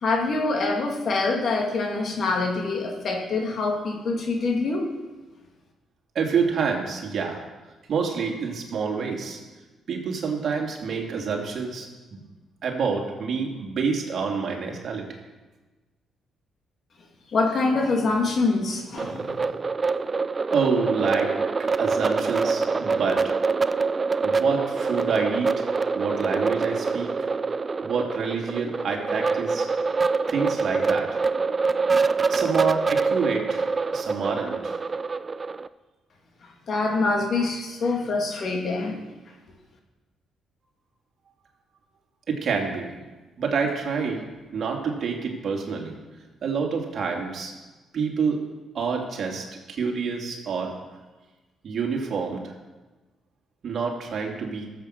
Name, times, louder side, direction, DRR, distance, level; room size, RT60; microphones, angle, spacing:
voice 1, 0.0-4.9 17.3-19.4 36.7-39.0, left 3 dB, 55° left, 1 dB, 2.4 m, -25 dB
voice 2, 6.1-7.4 7.9-9.4 9.9-12.2 12.6-15.0 20.5-21.3 21.8-23.3 24.2-27.1 27.8-29.7 30.3-31.2 32.3-34.8 42.3-43.0 43.4-44.2 44.5-46.0 46.4-47.5 47.9-48.4 48.7-50.7 51.6-52.5 53.6-54.7, right 5 dB, 55° right, 1 dB, 2.6 m, -27 dB
sound 1, 19.0-35.7, right 4 dB, 30° right, 0.4 m, -25 dB
14.0 x 7.8 x 6.6 m, 1.2 s
cardioid pair, 90°, 0 cm